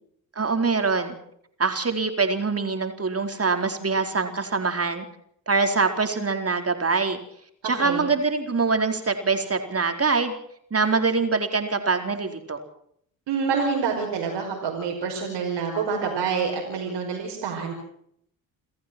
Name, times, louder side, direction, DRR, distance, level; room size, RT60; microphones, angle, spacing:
voice 1, 0.4-1.2 1.6-5.0 5.5-7.2 7.6-10.3 10.7-12.6, right 4 dB, 30° right, 6 dB, 4.4 m, -24 dB
voice 2, 7.6-8.0 13.3-17.7, right 5 dB, 70° right, 0 dB, 5.2 m, -27 dB
29.0 x 14.5 x 6.2 m, 0.68 s
hypercardioid pair, 50°, 44 cm